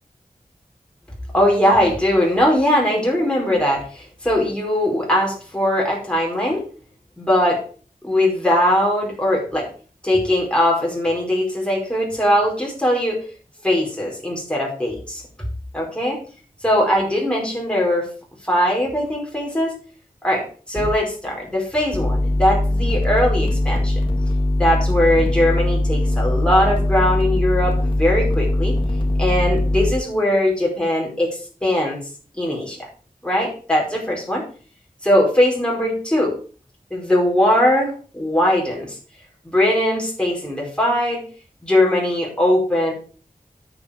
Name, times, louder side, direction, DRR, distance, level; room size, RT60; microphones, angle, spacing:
voice 1, 1.3-6.6 7.2-7.6 8.0-9.7 10.0-13.2 13.6-15.2 15.7-16.2 16.6-18.1 18.4-19.8 20.2-24.0 24.6-28.8 29.2-32.0 32.4-32.9 33.2-34.4 35.0-36.4 36.9-39.0 39.4-41.2 41.6-42.9, left 1 dB, 5° left, -3 dB, 5.0 m, -20 dB
sound 1, 20.8-20.9 21.9-29.9, left 1 dB, 35° left, 2.4 m, -20 dB
10.5 x 8.3 x 5.2 m, 0.40 s
wide cardioid pair, 60°, 15 cm